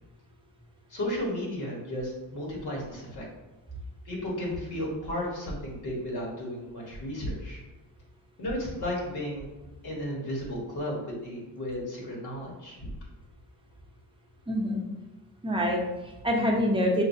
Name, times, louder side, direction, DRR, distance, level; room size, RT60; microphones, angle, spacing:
voice 1, 0.9-3.3 4.0-7.6 8.4-9.5 9.8-12.9, left 1 dB, 60° left, -3 dB, 1.3 m, -34 dB
voice 2, 14.5-14.8 15.4-17.0, equal, 10° right, -2 dB, 0.8 m, -26 dB
5.0 x 2.2 x 2.7 m, 1.1 s
cardioid pair, 85°, 42 cm